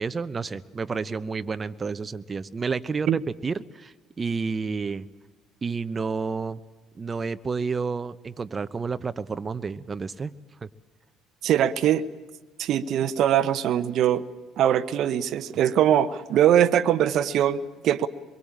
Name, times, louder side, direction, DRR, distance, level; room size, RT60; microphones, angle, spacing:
voice 1, 0.0-5.1 5.6-6.6 7.0-10.3 10.6-10.7, right 4 dB, 35° right, 12 dB, 1.0 m, -30 dB
voice 2, 11.4-12.0 12.6-14.2 14.6-18.1, right 10 dB, 60° right, 13 dB, 1.0 m, -22 dB
24.5 x 22.5 x 8.8 m, 1.2 s
hypercardioid pair, 55°, 0 cm